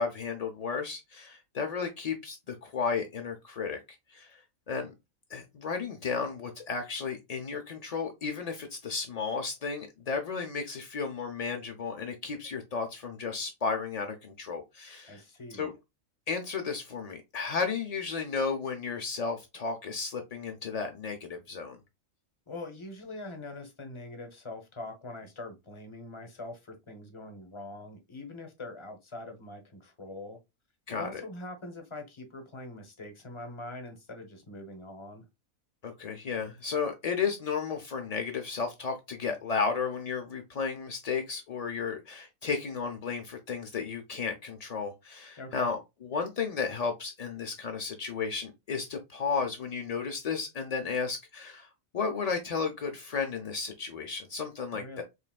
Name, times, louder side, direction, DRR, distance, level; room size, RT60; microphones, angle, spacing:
voice 1, 0.0-3.8 4.1-4.4 4.7-4.9 5.3-15.2 15.6-15.7 16.3-21.8 30.9-31.2 35.8-55.0, left 5 dB, 55° left, 0.4 m, -33 dB
voice 2, 15.1-15.7 22.5-30.4 30.9-35.3 45.4-45.7 54.7-55.0, left 2 dB, 25° left, 0.7 m, -43 dB
4.7 x 3.2 x 2.3 m
omnidirectional pair, 1.4 m